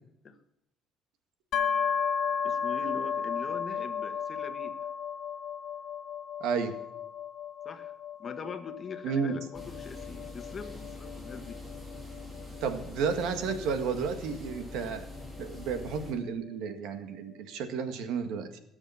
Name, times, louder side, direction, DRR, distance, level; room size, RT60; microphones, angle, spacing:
sound 1, 1.5-15.2, left 7 dB, 55° left, 1.5 m, -35 dB
voice 1, 2.4-4.7 7.6-7.9 8.2-11.6, left 5 dB, 30° left, 8 dB, 1.4 m, -42 dB
voice 2, 6.4-6.8 9.0-9.4 12.6-15.0 15.4-18.6, right 6 dB, 80° right, 8 dB, 1.8 m, -32 dB
sound 2, 9.5-16.1, left 2 dB, 10° right, 6.8 m, -44 dB
17.5 x 7.2 x 7.1 m, 0.81 s
cardioid pair, 135°, 0 cm